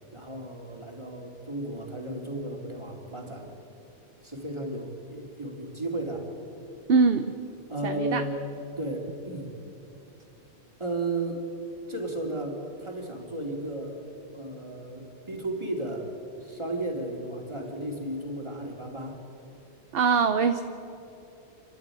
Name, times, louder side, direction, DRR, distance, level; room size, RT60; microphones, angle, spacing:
voice 1, 0.1-3.5 4.2-6.3 7.7-8.5 8.8-9.5 10.8-11.5 11.9-14.0 14.3-16.1 16.4-19.2, right 1 dB, 25° right, 1 dB, 2.9 m, -34 dB
voice 2, 6.9-7.3 7.8-8.2 19.9-20.6, right 5 dB, 60° right, 8 dB, 1.0 m, -22 dB
28.0 x 12.0 x 9.1 m, 2.8 s
omnidirectional pair, 1.1 m